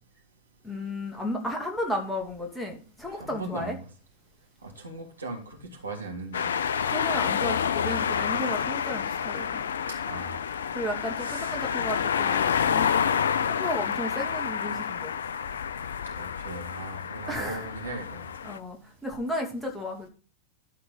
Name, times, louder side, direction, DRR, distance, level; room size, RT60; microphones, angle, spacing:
voice 1, 0.6-3.8 6.8-9.6 10.7-13.0 13.4-15.1 17.3-17.7 18.4-20.1, left 1 dB, 5° left, 0 dB, 2.6 m, -33 dB
voice 2, 3.2-3.8 4.6-6.5 10.1-10.5 11.2-11.5 16.2-18.3, right 2 dB, 75° right, 1 dB, 2.8 m, -38 dB
sound 1, 6.3-18.6, left 7 dB, 65° left, 0.5 m, -28 dB
12.0 x 4.6 x 5.8 m, 0.36 s
figure-of-eight pair, 90°, 0 cm